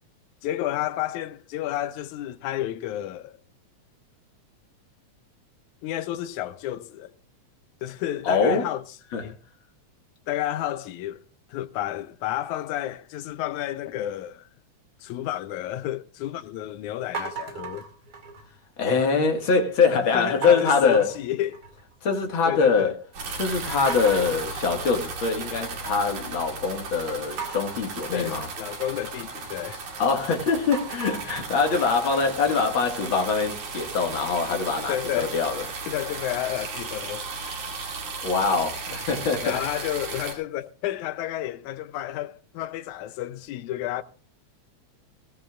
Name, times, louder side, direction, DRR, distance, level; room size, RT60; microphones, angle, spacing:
voice 1, 0.4-3.4 5.8-7.1 7.8-8.8 9.2-9.4 10.3-11.2 11.5-14.5 15.0-17.8 19.9-21.6 22.5-23.0 28.1-29.9 34.9-35.4 35.9-37.3 39.4-44.0, left 13 dB, 90° left, 2.1 m, -31 dB
voice 2, 8.2-8.7 9.1-9.3 18.8-21.1 22.0-22.9 23.4-28.5 30.0-35.6 38.2-39.6, left 5 dB, 45° left, 2.3 m, -23 dB
sound 1, 17.1-18.6 19.0-19.5 20.4-21.9 22.3-22.8 23.2-23.3 23.9-26.0 27.4-30.2 30.6-33.5, right 5 dB, 35° right, 2.7 m, -38 dB
sound 2, 23.1-40.3, right 4 dB, 85° right, 3.8 m, -35 dB
20.0 x 15.0 x 2.4 m
omnidirectional pair, 3.3 m